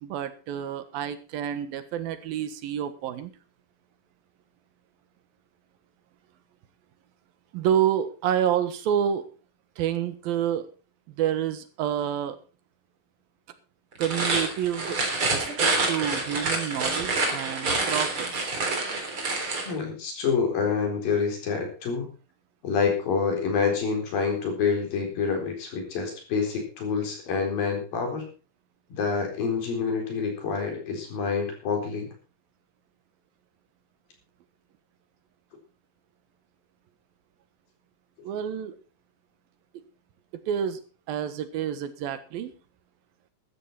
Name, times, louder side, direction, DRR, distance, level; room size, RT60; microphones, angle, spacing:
voice 1, 0.0-3.3 7.5-9.2 9.8-10.7 11.1-12.4 14.0-15.0 15.3-18.6 38.2-38.7 40.5-40.8 41.1-42.5, right 9 dB, 85° right, 12 dB, 3.2 m, -28 dB
sound 1, 13.9-19.7, right 3 dB, 35° right, 4.2 m, -27 dB
voice 2, 19.7-22.1 22.6-28.3 28.9-32.1, left 5 dB, 80° left, 3 dB, 5.8 m, -27 dB
14.0 x 13.0 x 4.2 m, 0.33 s
omnidirectional pair, 4.0 m